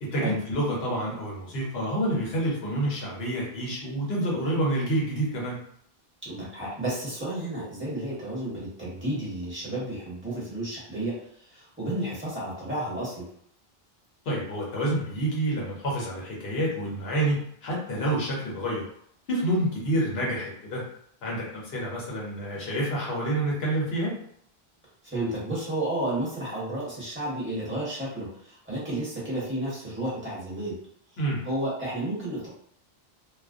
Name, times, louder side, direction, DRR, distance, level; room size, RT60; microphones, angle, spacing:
voice 1, 0.0-5.6 14.3-18.9 19.3-20.8 21.2-24.1 31.2-31.4, right 1 dB, 75° left, -4 dB, 1.1 m, -28 dB
voice 2, 6.2-11.2 11.5-13.3 25.0-30.8 31.4-32.5, right 1 dB, 10° right, -8 dB, 1.0 m, -32 dB
2.4 x 2.1 x 2.5 m, 0.67 s
omnidirectional pair, 1.0 m